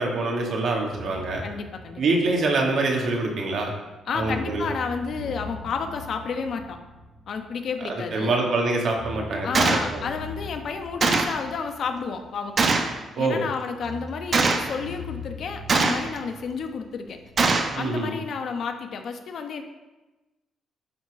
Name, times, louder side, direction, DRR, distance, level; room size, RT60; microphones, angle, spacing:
voice 1, 0.0-1.4 2.0-3.7 4.1-4.6 8.1-9.6 9.9-10.0 13.2-13.4 17.8-18.1, right 3 dB, 60° right, 0 dB, 1.9 m, -25 dB
sound 1, 0.9-3.7 4.1-8.4 8.9-13.0 13.8-17.7, left 2 dB, 20° right, 2.3 m, -42 dB
voice 2, 1.4-2.2 4.1-6.8 7.3-8.4 9.4-12.7 13.2-17.2 17.7-19.6, left 5 dB, 60° left, 5 dB, 1.0 m, -31 dB
Gunshot gunfire, 9.5-9.9 11.0-11.4 12.6-13.0 14.3-14.7 15.7-16.2 17.4-17.8, right 4 dB, 45° right, 0.9 m, -21 dB
11.5 x 4.1 x 4.8 m, 1.1 s
cardioid pair, 90°, 0 cm